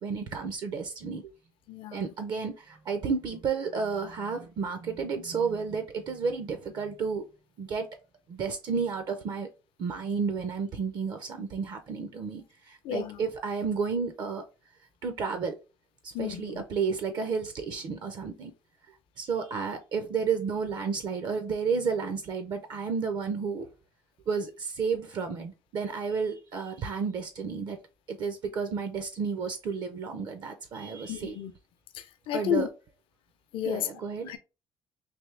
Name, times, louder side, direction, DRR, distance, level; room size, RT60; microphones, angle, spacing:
voice 1, 0.0-1.3 1.9-7.3 7.6-7.9 8.3-9.5 9.8-14.4 15.0-15.6 16.0-18.5 19.2-23.7 24.3-27.8 28.1-31.4 32.3-32.7 33.6-34.4, right 5 dB, 50° right, 0.5 m, -32 dB
voice 2, 1.7-2.0 12.8-13.2 16.1-16.6 31.1-31.5 31.9-32.7 33.5-33.9 34.3-34.4, left 9 dB, 70° left, 0.6 m, -31 dB
3.4 x 2.6 x 3.2 m
cardioid pair, 130°, 9 cm